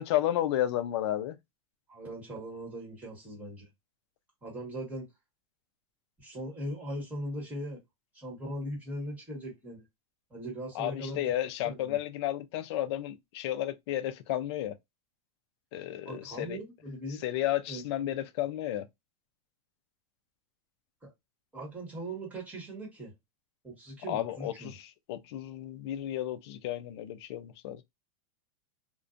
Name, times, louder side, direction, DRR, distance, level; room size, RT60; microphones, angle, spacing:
voice 1, 0.0-1.4 10.7-14.7 15.7-16.6 17.2-18.9 24.1-27.8, left 13 dB, 45° left, 0.4 m, -32 dB
voice 2, 1.9-3.7 4.4-5.1 6.2-7.8 8.1-9.8 10.3-11.3 11.6-12.0 16.0-17.2 17.7-17.8 21.0-21.1 21.5-23.1 23.6-24.7, right 1 dB, 10° right, 1.2 m, -39 dB
2.5 x 2.1 x 2.4 m
supercardioid pair, 155°, 19 cm